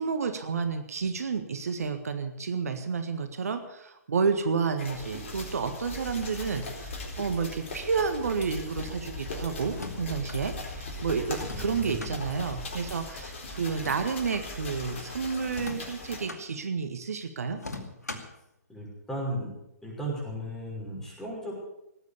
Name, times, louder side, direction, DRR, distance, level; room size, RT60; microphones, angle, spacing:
voice 1, 0.0-17.6, right 5 dB, 65° right, 8 dB, 1.6 m, -30 dB
sound 1, 4.8-16.2, left 2 dB, 45° left, 4.2 m, -39 dB
sound 2, 9.6-10.4 11.3-12.2 13.6-14.5 15.5-16.4 17.6-18.4, left 2 dB, 75° left, 2.4 m, -40 dB
voice 2, 11.5-12.2 18.7-19.5 19.8-21.5, right 1 dB, 5° left, -3 dB, 5.7 m, -35 dB
18.5 x 8.3 x 8.4 m, 0.85 s
figure-of-eight pair, 130°, 9 cm